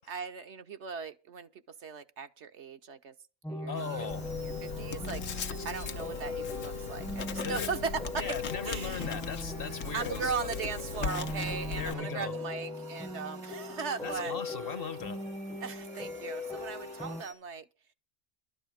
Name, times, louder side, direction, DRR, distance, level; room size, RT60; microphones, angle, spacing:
voice 1, 0.0-3.1 3.5-4.1 4.3-8.4 8.6-9.1 9.9-14.3 15.6-17.7, right 5 dB, 60° right, 1.2 m, -38 dB
sound 1, 3.4-17.2, left 2 dB, 5° left, 0.7 m, -40 dB
voice 2, 3.7-4.3 7.4-7.7 8.2-10.3 11.8-12.3 14.0-15.2, left 6 dB, 50° left, 1.1 m, -38 dB
sound 2, 3.7-17.3, right 1 dB, 80° right, 3.4 m, -49 dB
Writing, 4.1-11.9, left 6 dB, 75° left, 1.3 m, -39 dB
12.5 x 8.2 x 7.2 m
omnidirectional pair, 1.3 m